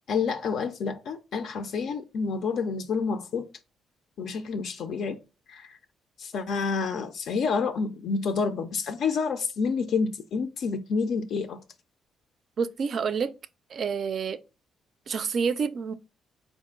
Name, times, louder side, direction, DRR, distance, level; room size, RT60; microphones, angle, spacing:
voice 1, 0.1-3.5 4.2-5.2 5.5-5.8 6.2-11.6, left 5 dB, 70° left, 0.4 m, -28 dB
voice 2, 12.6-13.3 13.7-14.4 15.1-15.9, right 6 dB, 55° right, 0.3 m, -28 dB
3.8 x 2.5 x 3.6 m
cardioid pair, 85°, 0 cm